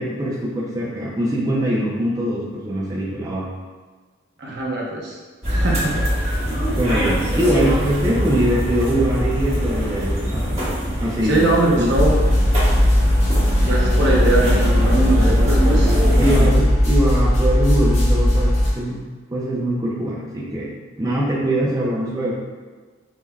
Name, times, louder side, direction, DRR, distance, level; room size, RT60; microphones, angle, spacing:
voice 1, 0.0-3.5 6.7-10.6 11.0-11.5 11.7-11.9 16.2-22.3, equal, 20° right, -6 dB, 0.4 m, -22 dB
voice 2, 4.4-5.2 5.5-6.4 7.4-7.7 11.2-12.2 13.6-15.9, right 2 dB, 60° right, -3 dB, 0.7 m, -22 dB
sound 1, 5.4-16.5, equal, 35° right, 1.0 m, -23 dB
sound 2, 11.9-18.7, equal, 35° left, 0.7 m, -17 dB
5.3 x 2.1 x 2.3 m, 1.4 s
head